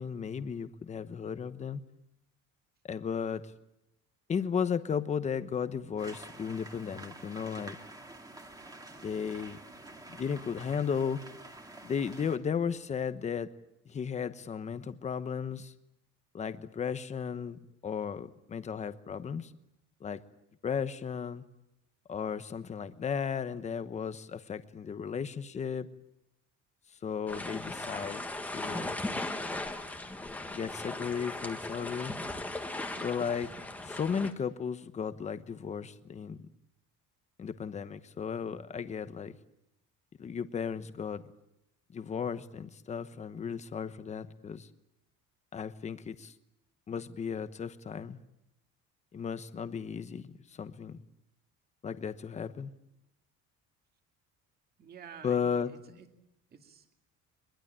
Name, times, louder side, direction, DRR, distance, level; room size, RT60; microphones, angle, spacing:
voice 1, 0.0-1.8 2.8-3.4 4.3-7.8 9.0-9.6 10.1-11.2 11.8-13.5 13.9-15.7 16.3-19.5 20.0-20.2 20.6-21.4 22.1-25.9 27.0-28.2 28.5-28.9 30.5-32.1 33.0-33.5 33.8-36.5 37.4-39.4 40.2-41.2 41.9-44.7 45.5-46.3 46.9-48.2 49.1-51.0 51.8-52.7 55.2-56.0, left 6 dB, 20° left, 11 dB, 1.0 m, -35 dB
sound 1, 6.0-12.4, right 2 dB, 10° right, 2.2 m, -48 dB
sound 2, 27.3-34.3, left 2 dB, 5° left, 1.5 m, -38 dB
voice 2, 54.8-56.1 56.5-56.9, right 7 dB, 30° right, 5 dB, 2.3 m, -51 dB
23.0 x 22.0 x 8.8 m, 0.88 s
cardioid pair, 180°, 31 cm